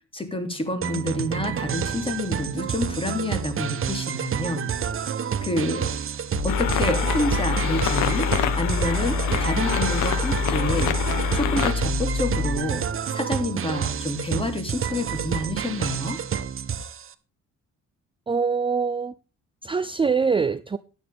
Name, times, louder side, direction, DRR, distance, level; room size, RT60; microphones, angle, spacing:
voice 1, 0.1-4.8 5.4-6.0 6.4-10.9 11.3-12.8 13.1-16.2, left 1 dB, 20° left, 2.9 m, -28 dB
sound 1, 0.8-17.1, right 8 dB, 45° right, 1.0 m, -29 dB
sound 2, 6.3-12.6, left 3 dB, 50° left, 2.3 m, -27 dB
sound 3, 6.5-11.7, left 9 dB, 85° left, 1.3 m, -27 dB
voice 2, 18.3-19.1 19.6-20.8, right 5 dB, 15° right, 0.5 m, -23 dB
13.0 x 9.9 x 3.5 m
cardioid pair, 90°, 30 cm